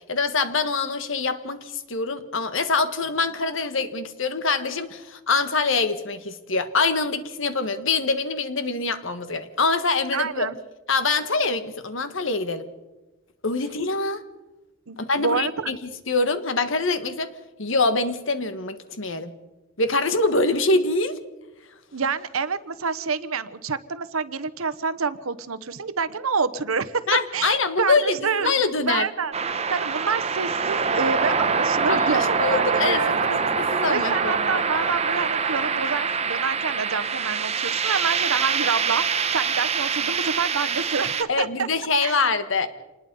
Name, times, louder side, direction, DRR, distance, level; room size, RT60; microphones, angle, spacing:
voice 1, 0.1-10.5 10.9-12.6 13.4-14.2 15.0-15.8 16.1-17.3 17.6-19.3 19.8-21.2 27.1-29.1 31.9-34.6 41.3-42.7, left 3 dB, 65° left, 11 dB, 1.6 m, -24 dB
voice 2, 10.1-10.6 14.9-15.7 21.9-27.1 27.3-29.3 29.7-41.7 42.0-42.2, right 5 dB, 85° right, 13 dB, 1.0 m, -27 dB
sound 1, 29.3-41.2, right 5 dB, 30° right, 1.1 m, -24 dB
26.5 x 20.0 x 5.4 m, 1.1 s
head